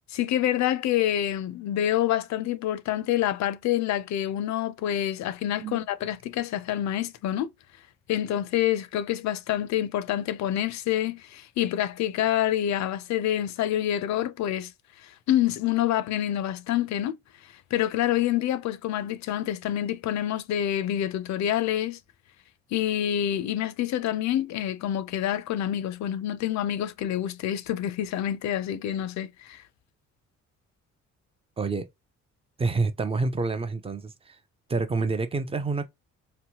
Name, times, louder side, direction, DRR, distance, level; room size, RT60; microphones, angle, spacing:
voice 1, 0.1-7.5 8.1-14.7 15.0-17.2 17.4-22.0 22.7-29.6, left 11 dB, 65° left, 0.4 m, -27 dB
voice 2, 31.6-31.9 32.6-34.4 34.7-35.9, right 3 dB, 20° right, 0.4 m, -28 dB
2.9 x 2.1 x 2.8 m
cardioid pair, 90°, 30 cm